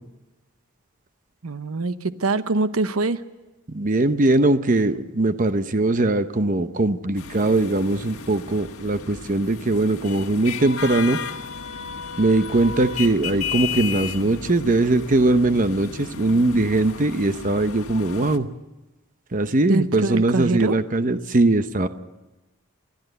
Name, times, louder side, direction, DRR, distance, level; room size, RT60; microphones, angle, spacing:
voice 1, 1.4-3.2 19.7-20.8, right 3 dB, 85° right, 12 dB, 0.9 m, -24 dB
voice 2, 3.7-11.2 12.2-18.5 19.3-21.9, right 2 dB, 40° right, 10 dB, 0.8 m, -21 dB
sound 1, 7.2-18.4, left 6 dB, 80° left, 1.5 m, -34 dB
29.5 x 13.0 x 8.0 m, 1.1 s
head